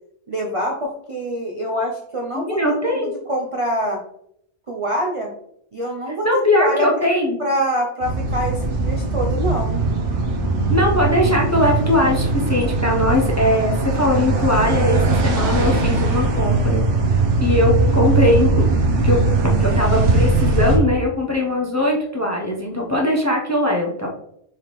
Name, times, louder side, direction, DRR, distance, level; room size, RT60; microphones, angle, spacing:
voice 1, 0.3-4.0 4.7-5.3 5.7-6.9 7.4-9.8, equal, 40° right, -1 dB, 0.5 m, -25 dB
voice 2, 2.3-3.2 6.2-7.4 10.7-16.8 17.4-18.6 19.0-24.1, left 1 dB, 20° left, -1 dB, 0.6 m, -20 dB
sound 1, 8.0-20.8, right 3 dB, 85° right, 1.2 m, -20 dB
4.6 x 3.5 x 3.0 m, 0.71 s
omnidirectional pair, 1.2 m